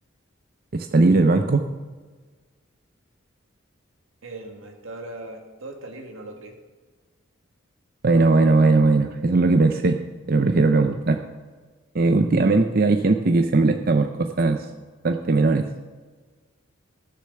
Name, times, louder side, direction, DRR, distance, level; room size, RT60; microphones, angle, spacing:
voice 1, 0.7-1.7 8.0-10.0 10.3-11.2 11.9-14.7 15.0-15.7, right 3 dB, 50° right, 6 dB, 0.6 m, -19 dB
voice 2, 4.2-6.6, right 2 dB, 85° right, 3 dB, 2.0 m, -39 dB
15.5 x 6.6 x 6.9 m, 1.4 s
head